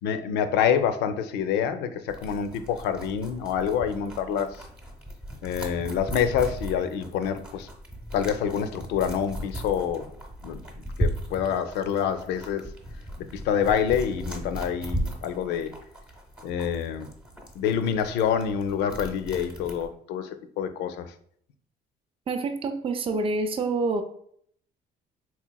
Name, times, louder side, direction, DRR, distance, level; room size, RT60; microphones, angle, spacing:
voice 1, 0.0-4.6 5.4-7.7 8.1-10.1 10.4-10.6 11.0-12.7 13.3-15.7 16.4-17.1 17.6-21.1, left 8 dB, 85° left, 9 dB, 0.4 m, -27 dB
sound 1, 2.1-19.9, equal, 5° right, 0.7 m, -37 dB
voice 2, 22.3-24.0, right 3 dB, 35° right, 7 dB, 0.4 m, -27 dB
4.0 x 2.9 x 2.2 m, 0.64 s
cardioid pair, 110°, 17 cm